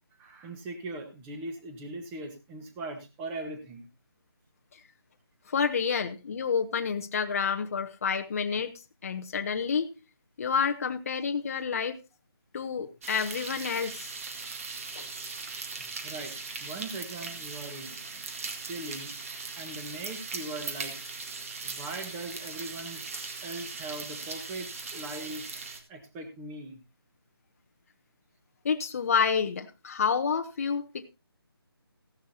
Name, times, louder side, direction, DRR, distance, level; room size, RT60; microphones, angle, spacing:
voice 1, 0.2-3.9 16.0-16.3 16.6-18.2 18.6-19.1 19.6-21.0 21.6-23.1 23.4-25.6 25.9-26.8, right 2 dB, 10° right, 6 dB, 1.4 m, -40 dB
voice 2, 5.5-8.7 9.0-9.9 10.4-12.0 12.5-14.1 14.9-15.1 28.6-31.1, left 6 dB, 35° left, 6 dB, 0.9 m, -29 dB
sound 1, 13.0-25.8, right 4 dB, 35° right, 2.0 m, -39 dB
15.5 x 11.0 x 2.8 m, 0.27 s
figure-of-eight pair, 165°, 13 cm